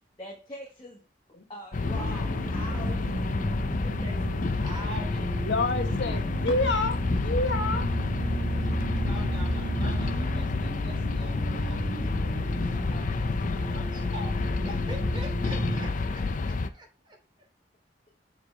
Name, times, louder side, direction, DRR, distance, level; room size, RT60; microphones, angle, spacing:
voice 1, 0.2-0.9 1.5-3.3, equal, 25° left, 1.4 m, -42 dB
sound 1, 1.7-16.7, left 3 dB, 45° left, 0.5 m, -29 dB
sound 2, 1.8-15.9, right 2 dB, 55° right, 1.2 m, -34 dB
voice 2, 3.8-4.1 4.6-5.3 8.5-17.2, equal, 30° right, 2.9 m, -45 dB
voice 3, 5.5-7.9, left 3 dB, 75° left, 1.0 m, -28 dB
6.9 x 4.7 x 3.3 m
head